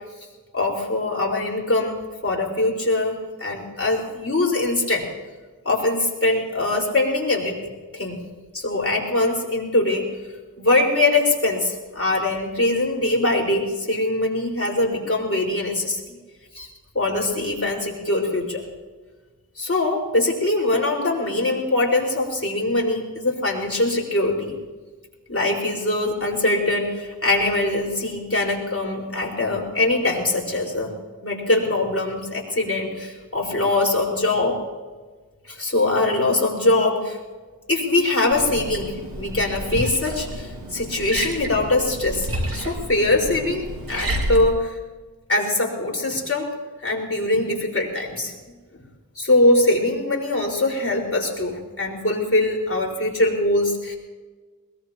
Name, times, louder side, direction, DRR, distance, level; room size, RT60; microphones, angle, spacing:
voice 1, 0.5-5.1 5.6-7.6 7.9-8.2 8.5-10.0 10.6-16.2 16.5-16.7 16.9-18.6 19.6-24.6 25.3-30.9 31.2-34.6 35.5-37.2 37.7-44.8 45.3-46.5 46.8-48.3 49.2-54.0, left 2 dB, 40° left, -2 dB, 5.0 m, -22 dB
Liquid, 38.3-44.4, right 1 dB, 80° right, 2.6 m, -30 dB
22.0 x 21.5 x 3.0 m, 1.3 s
wide cardioid pair, 70°, 35 cm